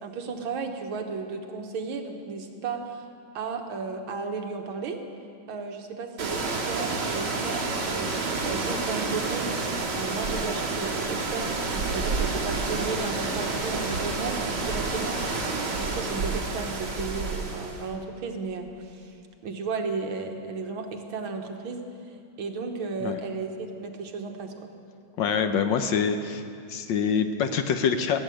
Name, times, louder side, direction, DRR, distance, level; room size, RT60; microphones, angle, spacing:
voice 1, 0.0-3.1 3.4-5.1 5.5-9.5 9.9-15.2 15.6-21.9 22.4-24.6, right 4 dB, 75° right, 4 dB, 1.9 m, -34 dB
sound 1, 6.2-17.9, right 3 dB, 55° right, 2.6 m, -29 dB
voice 2, 25.2-26.4 26.7-28.2, left 6 dB, 70° left, 8 dB, 1.3 m, -25 dB
16.5 x 7.7 x 8.9 m, 2.4 s
omnidirectional pair, 2.3 m